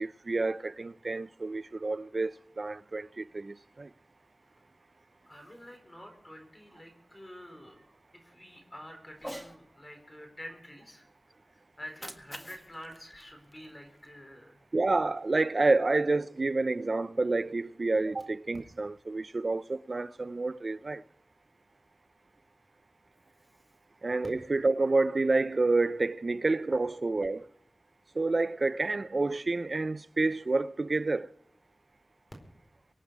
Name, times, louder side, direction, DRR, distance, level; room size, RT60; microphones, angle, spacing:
voice 1, 0.0-3.9 14.7-21.0 24.0-27.5 28.2-31.3, right 3 dB, 50° right, 0.4 m, -29 dB
voice 2, 5.3-7.8 8.1-11.0 11.4-14.5 18.1-18.2, equal, 25° left, 4.4 m, -48 dB
Cat, 9.1-9.6 11.7-14.1, equal, ahead, 1.6 m, -46 dB
24.5 x 8.8 x 4.7 m
wide cardioid pair, 85°, 0 cm